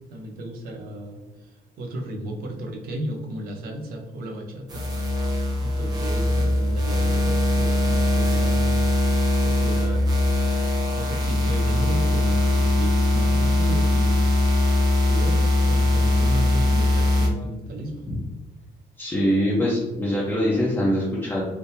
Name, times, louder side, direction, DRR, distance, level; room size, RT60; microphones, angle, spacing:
voice 1, 0.0-10.1 10.9-14.3 15.1-18.0, right 1 dB, 70° right, 2 dB, 0.8 m, -34 dB
sound 1, 4.7-17.3, left 1 dB, 25° right, 0.8 m, -21 dB
voice 2, 19.0-21.4, equal, 15° left, -6 dB, 0.6 m, -23 dB
3.5 x 2.7 x 2.7 m, 1.1 s
cardioid pair, 150°, 16 cm